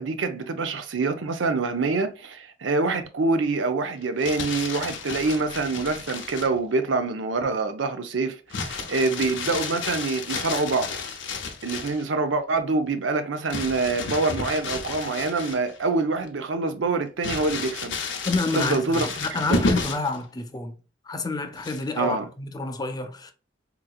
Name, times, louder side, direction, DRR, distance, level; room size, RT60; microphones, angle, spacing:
voice 1, 0.0-10.9 11.6-18.0 18.5-19.1 19.5-19.6 22.0-22.2, right 3 dB, 90° right, 0.6 m, -25 dB
Crumpling crinkling, 4.0-6.6 8.5-12.1 13.5-15.9 16.3-16.4 17.2-20.2 21.6-22.0, left 4 dB, 75° left, 0.7 m, -31 dB
voice 2, 18.3-20.7 21.1-23.3, left 3 dB, 20° left, 0.4 m, -28 dB
3.7 x 2.9 x 2.3 m
head